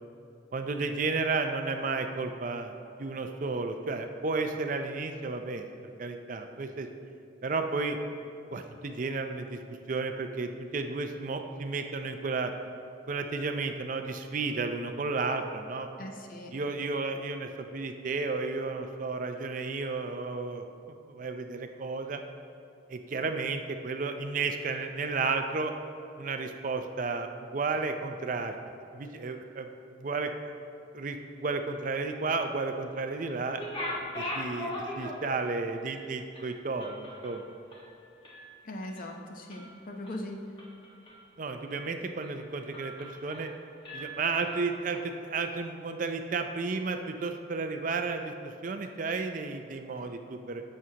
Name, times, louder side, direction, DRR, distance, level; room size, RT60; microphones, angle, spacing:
voice 1, 0.5-2.7 3.0-5.7 6.0-6.9 7.4-8.0 8.5-9.6 9.9-12.5 13.1-15.9 16.5-20.6 21.1-22.2 22.9-25.7 26.2-28.5 28.9-29.7 30.0-30.3 30.9-33.6 34.1-37.5 41.4-43.5 43.9-50.6, right 4 dB, 40° right, 6 dB, 0.4 m, -32 dB
voice 2, 16.0-16.5 38.6-40.5, left 1 dB, 45° left, 2 dB, 0.8 m, -40 dB
sound 1, 33.5-35.5 35.9-36.0 36.3-38.5 38.8-39.1 39.5-40.1 40.6-41.3 41.7-41.8 42.2-42.4 42.7-43.6 43.8-45.0, left 1 dB, 25° left, 1.3 m, -40 dB
11.0 x 7.5 x 2.8 m, 2.6 s
head